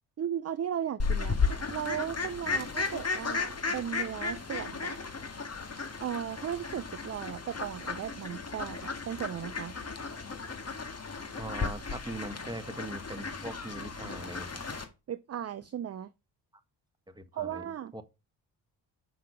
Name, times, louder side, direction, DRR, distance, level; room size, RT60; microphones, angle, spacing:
voice 1, 0.2-1.4 1.7-5.0 6.0-9.7 15.1-16.1 17.3-17.9, right 9 dB, 35° right, 0.6 m, -36 dB
Fowl, 1.0-14.8, left 4 dB, 30° left, 1.8 m, -35 dB
voice 2, 11.3-14.6 17.1-18.0, right 1 dB, 10° right, 1.3 m, -41 dB
6.5 x 5.8 x 5.1 m
supercardioid pair, 50°, 47 cm